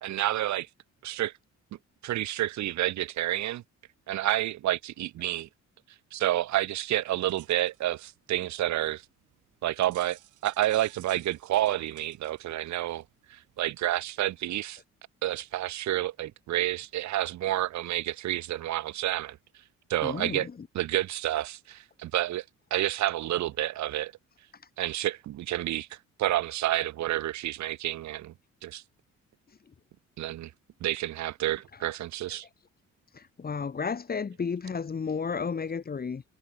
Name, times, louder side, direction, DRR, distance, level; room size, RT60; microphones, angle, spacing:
voice 1, 0.0-0.7 1.0-1.3 2.0-3.6 4.1-5.5 6.1-9.0 9.6-13.0 13.3-14.8 15.2-19.4 19.9-20.5 20.7-22.4 22.7-24.1 24.8-28.3 28.6-28.8 30.2-30.5 30.8-32.5, right 14 dB, 65° right, 0.8 m, -29 dB
sound 1, 7.2-14.1, right 14 dB, 85° right, 4.2 m, -57 dB
voice 2, 20.0-20.5 33.1-36.2, left 5 dB, 30° left, 1.4 m, -32 dB
cardioid pair, 90°, 30 cm